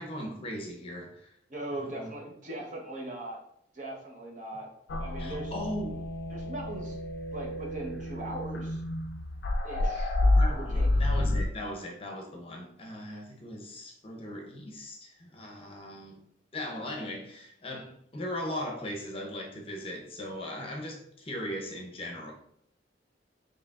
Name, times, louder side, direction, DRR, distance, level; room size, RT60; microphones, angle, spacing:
voice 1, 0.0-1.3 1.7-2.1 5.2-6.0 10.3-16.2 16.5-22.3, left 1 dB, 30° left, 0 dB, 0.7 m, -38 dB
voice 2, 1.5-3.4 3.7-4.7 5.0-5.5 6.3-7.0 7.3-8.8 9.6-10.2 10.5-10.9, right 1 dB, 45° right, -1 dB, 0.9 m, -39 dB
sound 1, 4.9-11.5, left 1 dB, 60° left, 0.4 m, -29 dB
4.8 x 3.1 x 2.4 m, 0.70 s
head